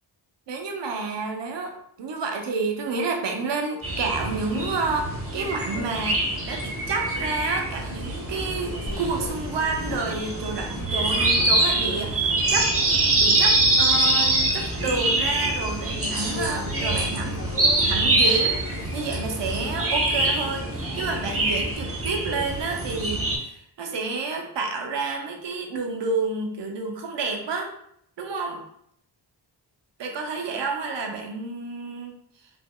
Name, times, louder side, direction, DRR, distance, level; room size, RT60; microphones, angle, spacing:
voice 1, 0.5-1.7 2.0-12.7 13.2-17.4 17.8-27.7 28.2-28.6 30.0-32.1, right 4 dB, 75° right, 2 dB, 0.7 m, -30 dB
sound 1, 3.8-23.4, right 2 dB, 30° right, 0.8 m, -24 dB
sound 2, 8.3-21.7, left 2 dB, 60° left, 0.8 m, -39 dB
3.4 x 3.0 x 2.2 m, 0.72 s
cardioid pair, 80°, 43 cm